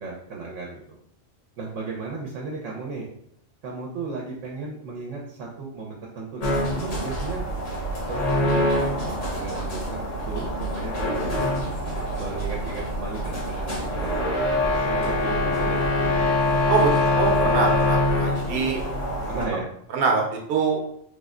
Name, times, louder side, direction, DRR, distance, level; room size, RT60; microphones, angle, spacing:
voice 1, 0.0-0.8 1.6-3.1 3.6-7.4 8.1-8.7 9.1-11.6 12.1-16.3 19.3-19.7, right 3 dB, 80° right, -1 dB, 1.0 m, -35 dB
sound 1, 6.4-19.5, left 1 dB, 80° left, 1.4 m, -25 dB
voice 2, 17.2-18.8 19.9-20.8, right 5 dB, 55° right, 0 dB, 0.9 m, -23 dB
3.4 x 2.1 x 3.6 m, 0.69 s
omnidirectional pair, 1.3 m